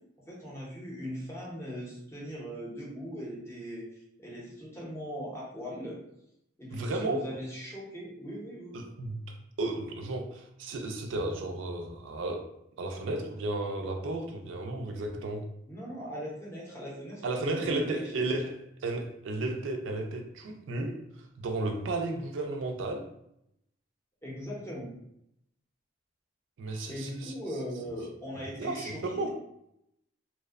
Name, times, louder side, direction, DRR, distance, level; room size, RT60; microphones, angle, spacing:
voice 1, 0.3-6.0 6.6-8.8 15.7-18.3 24.2-24.9 26.9-29.3, equal, 15° left, -5 dB, 0.6 m, -40 dB
voice 2, 6.7-7.3 8.7-9.2 9.6-12.5 12.8-15.5 17.2-21.0 21.4-23.1 26.6-27.3 28.6-29.3, right 2 dB, 85° right, 3 dB, 0.4 m, -33 dB
2.6 x 2.0 x 2.3 m, 0.77 s
head